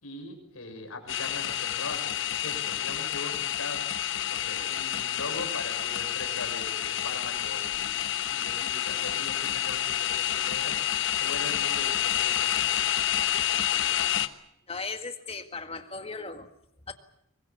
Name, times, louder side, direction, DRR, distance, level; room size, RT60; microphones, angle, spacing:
voice 1, 0.0-10.8 11.2-12.7, left 2 dB, 75° left, 4 dB, 6.3 m, -41 dB
sound 1, 1.1-14.3, left 11 dB, 55° left, 1.2 m, -29 dB
voice 2, 14.7-16.5 16.9-17.0, left 4 dB, 25° left, 7 dB, 1.8 m, -37 dB
24.0 x 20.5 x 8.4 m, 0.72 s
head